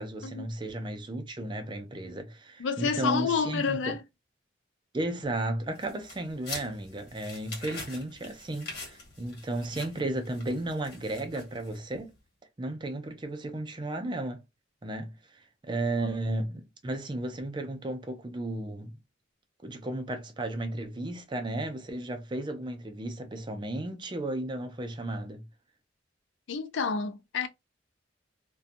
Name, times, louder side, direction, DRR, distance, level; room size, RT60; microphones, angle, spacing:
voice 1, 0.0-4.0 4.9-12.1 12.6-14.4 14.8-19.0 19.6-25.4, right 1 dB, 25° right, 0.4 m, -34 dB
voice 2, 2.6-4.0 16.0-16.1 26.5-27.5, left 5 dB, 90° left, 0.4 m, -29 dB
sound 1, 5.7-12.0, left 3 dB, 55° left, 1.4 m, -44 dB
2.6 x 2.2 x 2.5 m
head